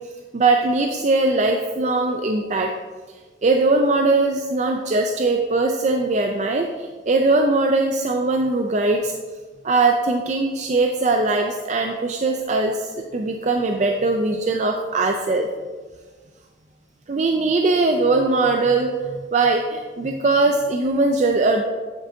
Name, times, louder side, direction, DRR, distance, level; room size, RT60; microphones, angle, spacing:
voice 1, 0.3-2.7 3.4-9.1 9.6-15.5 17.1-21.6, right 3 dB, 40° right, 3 dB, 0.4 m, -20 dB
8.7 x 7.8 x 2.7 m, 1.5 s
head